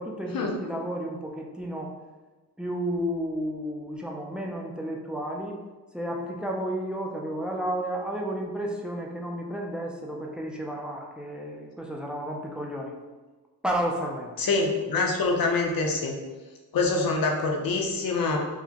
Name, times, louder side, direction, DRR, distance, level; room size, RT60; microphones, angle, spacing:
voice 1, 0.0-1.9 2.6-5.6 5.9-13.0 13.6-14.3, equal, 5° right, 0 dB, 0.3 m, -32 dB
voice 2, 14.4-16.1 16.7-18.4, left 3 dB, 70° left, 1 dB, 0.7 m, -25 dB
4.8 x 2.1 x 2.8 m, 1.3 s
wide cardioid pair, 135°, 36 cm